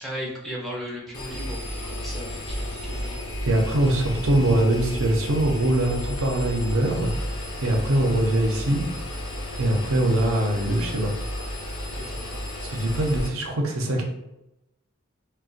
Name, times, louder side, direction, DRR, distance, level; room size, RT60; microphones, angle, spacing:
voice 1, 0.0-3.2 11.9-12.3 12.9-13.1, equal, ahead, -4 dB, 0.5 m, -37 dB
Engine, 1.1-13.3, left 1 dB, 85° left, 0.7 m, -32 dB
voice 2, 3.4-7.1 7.6-8.8 9.6-11.1 12.6-14.0, right 1 dB, 75° right, 1 dB, 0.6 m, -22 dB
2.4 x 2.1 x 3.8 m, 0.91 s
head